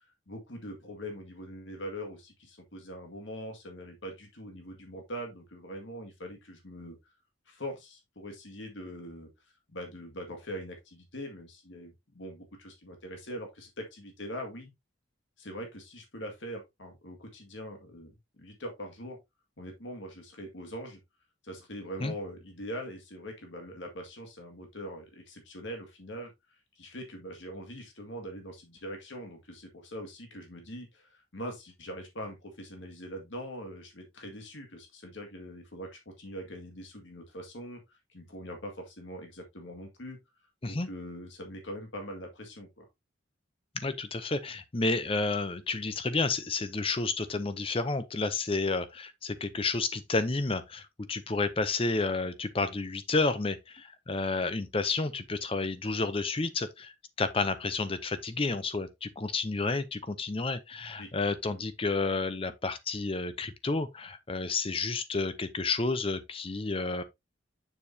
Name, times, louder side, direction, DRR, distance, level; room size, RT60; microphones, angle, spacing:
voice 1, 0.0-7.0 7.5-9.3 9.7-14.7 15.4-19.2 19.6-21.0 21.4-40.2 40.6-42.8 61.0-61.1, equal, 65° left, 2.0 m, -42 dB
voice 2, 43.8-67.0, left 3 dB, 25° left, 0.6 m, -31 dB
7.0 x 6.9 x 2.7 m
head